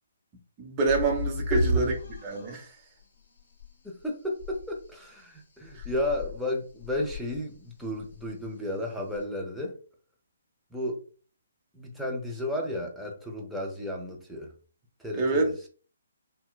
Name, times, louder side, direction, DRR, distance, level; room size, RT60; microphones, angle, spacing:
voice 1, 0.6-1.9 2.2-2.6 5.8-5.9 15.1-15.5, right 3 dB, 20° right, 1.0 m, -26 dB
sound 1, 0.9-2.5 3.6-3.7 4.0-4.1 4.4-4.9 5.7-6.4 6.8-7.4 8.0-8.5 9.2-9.3, equal, 45° left, 1.8 m, -32 dB
voice 2, 1.5-1.8 3.8-9.8 10.7-11.0 11.7-14.5 15.0-15.7, left 1 dB, ahead, 0.8 m, -33 dB
5.6 x 2.2 x 2.3 m
figure-of-eight pair, 135°, 0 cm